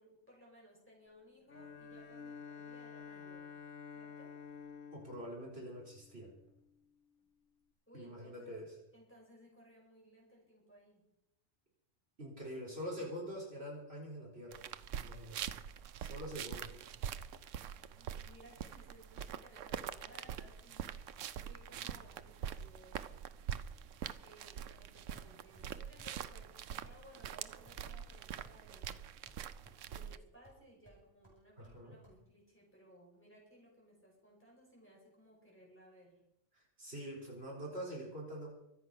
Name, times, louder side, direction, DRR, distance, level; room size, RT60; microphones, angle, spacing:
voice 1, 0.0-3.5 3.9-4.3 7.9-8.6 8.9-11.0 17.7-23.2 24.2-29.0 29.9-36.2, equal, 10° left, -3 dB, 5.8 m, -61 dB
Bowed string instrument, 1.5-6.6, left 6 dB, 70° left, 1.4 m, -51 dB
voice 2, 4.9-6.3 7.9-8.7 12.2-14.6 15.0-15.4 16.0-16.7 31.6-32.0 36.5-38.5, equal, 50° right, -3 dB, 4.1 m, -45 dB
sound 1, 14.5-30.2, right 9 dB, 75° right, 1.0 m, -44 dB
sound 2, 25.2-25.7 26.0-26.1 26.4-26.6 26.8-27.0 27.2-27.4 27.7-29.0 29.3-29.8 30.0-30.6 30.9-32.2, right 1 dB, 20° right, 5.3 m, -61 dB
24.0 x 8.1 x 5.6 m, 0.84 s
omnidirectional pair, 1.3 m